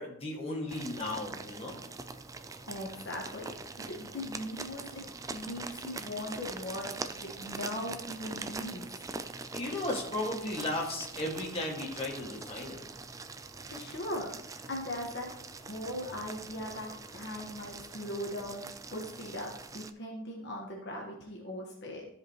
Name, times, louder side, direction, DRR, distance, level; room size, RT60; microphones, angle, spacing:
voice 1, 0.0-1.7 9.5-12.8, left 1 dB, 25° left, -3 dB, 1.8 m, -35 dB
sound 1, 0.7-19.9, right 3 dB, 15° right, 0.3 m, -43 dB
voice 2, 2.7-3.5 3.8-5.1 5.3-9.0 13.6-15.3 15.6-22.1, left 1 dB, 55° left, -1 dB, 1.3 m, -39 dB
13.5 x 5.1 x 3.0 m, 0.74 s
head